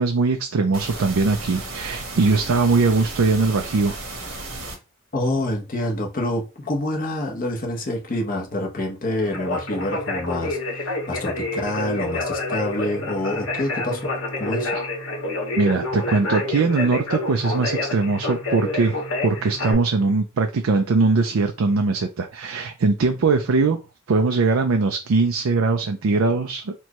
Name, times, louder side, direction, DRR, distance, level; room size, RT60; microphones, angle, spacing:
voice 1, 0.0-3.9 15.6-23.8 24.1-26.7, right 4 dB, 75° right, 0.4 m, -21 dB
sound 1, 0.7-4.7, right 2 dB, 90° right, 1.3 m, -34 dB
voice 2, 5.1-14.1 14.4-14.7, left 1 dB, 40° left, 0.9 m, -27 dB
Conversation, 9.2-19.7, left 2 dB, 65° left, 1.5 m, -28 dB
4.3 x 2.3 x 3.0 m
head